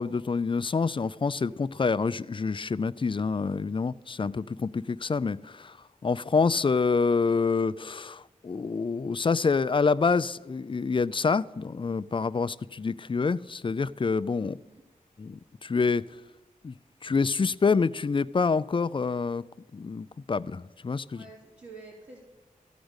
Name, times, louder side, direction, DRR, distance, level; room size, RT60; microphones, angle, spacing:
voice 1, 0.0-5.8 6.0-14.6 15.2-16.1 16.6-16.7 17.0-19.4 19.7-21.2, left 4 dB, 35° left, 0.4 m, -27 dB
voice 2, 14.4-14.8 21.1-22.2, right 3 dB, 50° right, 2.4 m, -48 dB
14.5 x 5.1 x 8.0 m
wide cardioid pair, 65°, 15 cm